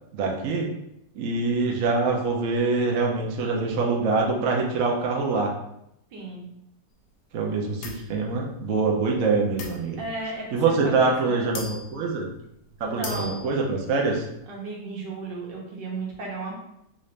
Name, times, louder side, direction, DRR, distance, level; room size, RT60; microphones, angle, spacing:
voice 1, 0.1-0.7 1.2-5.5 7.3-10.0 10.5-12.3 12.8-14.2, right 4 dB, 60° right, -1 dB, 0.9 m, -24 dB
voice 2, 6.1-6.5 10.0-11.6 12.8-13.3 14.5-16.6, right 3 dB, 80° right, -2 dB, 1.6 m, -35 dB
sound 1, 7.8-8.1 9.6-10.2 11.0-11.1 11.6-12.0 12.4-12.5 12.9-13.6, left 3 dB, 70° left, 1.0 m, -38 dB
3.9 x 2.5 x 3.2 m, 0.80 s
omnidirectional pair, 1.9 m